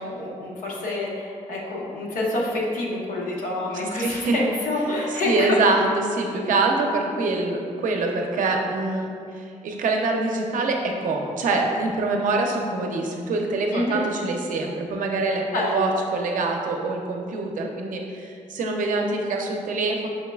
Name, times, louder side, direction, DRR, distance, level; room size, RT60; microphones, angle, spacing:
voice 1, 0.0-5.6 6.3-6.4 13.7-14.0 15.5-15.9, left 2 dB, 90° left, -3 dB, 0.7 m, -27 dB
voice 2, 4.0-4.4 5.2-20.1, right 3 dB, 75° right, 2 dB, 0.5 m, -25 dB
5.3 x 3.0 x 2.3 m, 2.4 s
cardioid pair, 95°, 14 cm